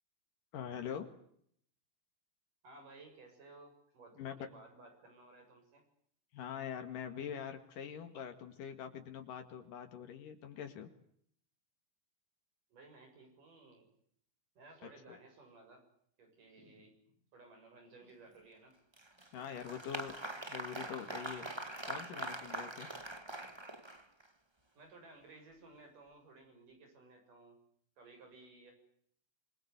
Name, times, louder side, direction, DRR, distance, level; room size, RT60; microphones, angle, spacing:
voice 1, 0.5-1.1 4.2-4.3 6.3-10.9 15.1-15.2 19.3-20.1 20.5-21.5 21.8-22.9, left 8 dB, 80° left, 6 dB, 3.6 m, -44 dB
voice 2, 2.6-5.8 12.7-13.9 14.6-15.8 16.2-16.9 17.3-18.8 24.8-27.6 28.0-28.7, right 3 dB, 75° right, 4 dB, 8.9 m, -57 dB
Applause, 18.9-24.3, right 2 dB, 20° right, 0.6 m, -43 dB
27.0 x 21.5 x 8.1 m, 0.68 s
omnidirectional pair, 3.7 m